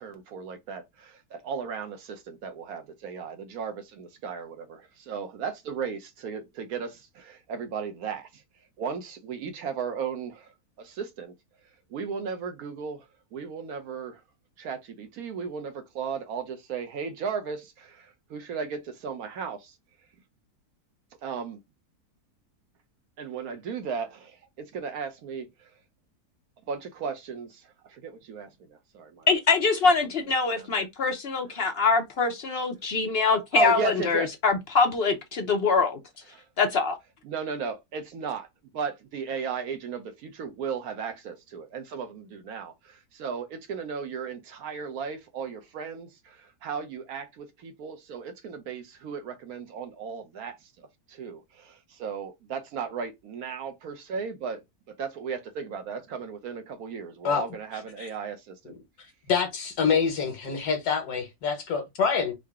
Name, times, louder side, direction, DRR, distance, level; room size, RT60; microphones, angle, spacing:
voice 1, 0.0-8.4 8.8-10.5 10.8-11.3 11.9-14.2 14.6-19.7 21.2-21.6 23.2-25.7 26.7-29.3 30.3-30.9 33.5-34.3 36.3-36.5 37.2-38.5 38.7-54.6 54.9-58.8, right 6 dB, 70° right, 1.3 m, -36 dB
voice 2, 29.3-36.0 36.6-36.9, left 4 dB, 60° left, 0.6 m, -24 dB
voice 3, 59.3-62.3, left 6 dB, 85° left, 1.5 m, -26 dB
3.8 x 2.1 x 3.5 m
omnidirectional pair, 1.6 m